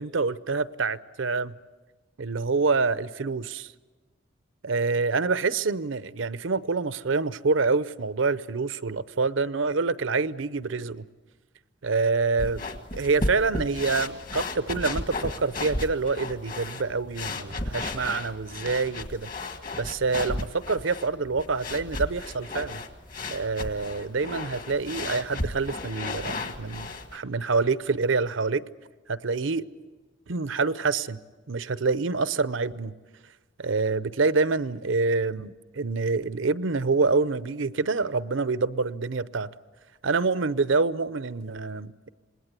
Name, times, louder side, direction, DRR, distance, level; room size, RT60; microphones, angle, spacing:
voice 1, 0.0-1.5 2.2-3.7 4.6-11.1 11.8-12.7 12.9-19.3 19.7-22.8 23.3-28.6 29.1-29.7 30.3-31.2 31.5-32.9 33.6-39.5 40.0-42.1, right 4 dB, 75° right, 0.7 m, -26 dB
sound 1, 12.4-27.2, left 2 dB, 40° left, 1.4 m, -34 dB
27.0 x 20.5 x 8.2 m
head